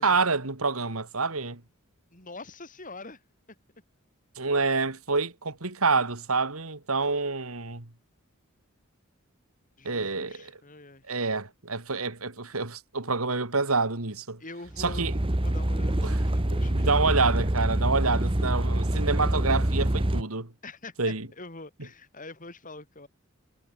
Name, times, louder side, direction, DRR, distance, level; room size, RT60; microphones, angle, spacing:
voice 1, 0.0-1.6 4.4-7.9 9.8-10.5 11.1-14.4 14.8-15.1 16.0-16.2 16.7-20.5 21.0-21.3, right 4 dB, 85° right, 2.7 m, -27 dB
voice 2, 2.1-3.2 9.8-11.0 14.4-15.1 15.4-17.3 20.6-20.9 21.3-23.1, left 2 dB, 40° left, 7.2 m, -44 dB
sound 1, 14.7-20.2, right 1 dB, 25° right, 1.1 m, -26 dB
head